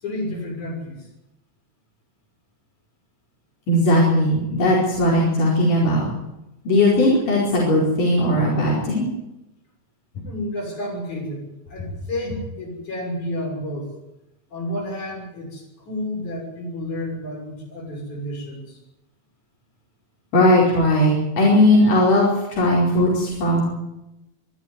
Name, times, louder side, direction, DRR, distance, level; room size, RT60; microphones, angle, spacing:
voice 1, 0.0-1.0 10.2-13.9 14.5-18.8, left 1 dB, 65° left, 0 dB, 7.8 m, -31 dB
voice 2, 3.7-6.1 6.6-9.1 20.3-23.6, left 1 dB, 80° left, -4 dB, 6.4 m, -18 dB
24.0 x 12.5 x 9.7 m, 0.92 s
omnidirectional pair, 3.6 m